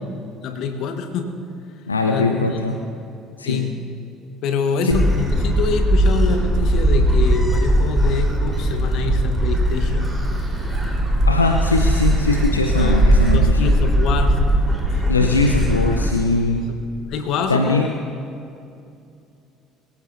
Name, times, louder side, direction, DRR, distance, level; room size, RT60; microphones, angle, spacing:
voice 1, 0.4-1.3 2.1-2.5 3.4-3.8 4.4-10.4 12.8-14.4 14.9-15.4 16.7-16.8 17.1-17.9, left 5 dB, 55° left, 5 dB, 1.5 m, -26 dB
voice 2, 1.9-2.8 3.4-3.6 4.8-5.0 11.3-13.7 15.1-16.7 17.5-17.9, left 3 dB, 85° left, 3 dB, 0.6 m, -20 dB
Gull seagull, 4.9-16.1, right 1 dB, 10° right, 4.1 m, -19 dB
23.5 x 14.0 x 2.8 m, 2.6 s
figure-of-eight pair, 55°, 0 cm